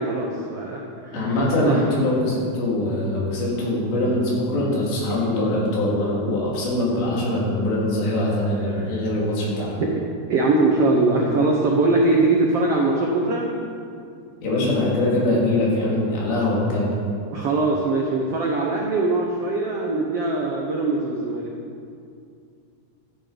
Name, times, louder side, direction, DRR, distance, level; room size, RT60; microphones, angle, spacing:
voice 1, 0.0-1.4 1.6-1.8 10.0-10.1 10.3-13.5 17.3-21.5, right 2 dB, 85° right, -1 dB, 1.3 m, -21 dB
voice 2, 1.1-9.7 14.4-17.0, left 1 dB, 90° left, -5 dB, 5.5 m, -22 dB
13.5 x 13.0 x 5.2 m, 2.4 s
omnidirectional pair, 4.8 m